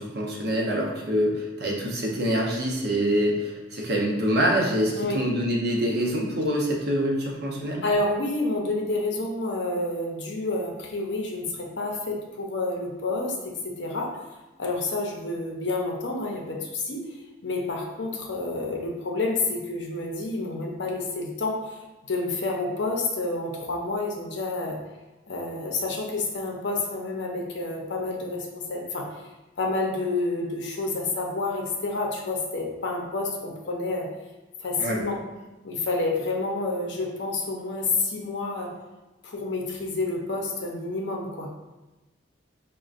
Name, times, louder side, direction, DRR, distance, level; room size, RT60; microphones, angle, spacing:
voice 1, 0.0-7.8 34.8-35.0, equal, 55° right, -2 dB, 0.7 m, -25 dB
voice 2, 7.8-13.3 13.6-14.1 14.6-17.0 17.4-21.8 22.1-24.8 25.3-29.2 29.6-34.1 34.6-35.2 35.6-38.7 39.2-41.5, left 2 dB, 65° left, 0 dB, 0.6 m, -29 dB
5.2 x 2.2 x 2.4 m, 1.1 s
head